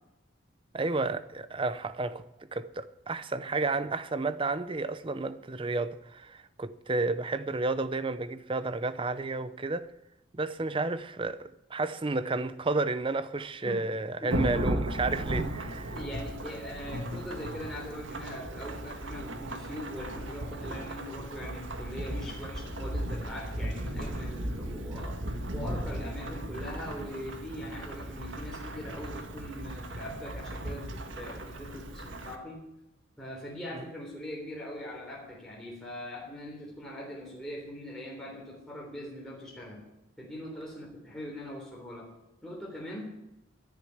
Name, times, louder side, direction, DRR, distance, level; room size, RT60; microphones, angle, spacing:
voice 1, 0.7-2.2 2.5-9.9 10.3-16.0 33.7-33.8, right 3 dB, 25° right, 0.6 m, -31 dB
Thunderstorm / Rain, 14.3-32.4, right 1 dB, 70° right, 1.6 m, -36 dB
voice 2, 15.9-25.2 25.5-32.6 33.2-39.8 40.2-42.1 42.4-43.1, left 1 dB, 5° left, 3.5 m, -41 dB
11.5 x 10.0 x 10.0 m
head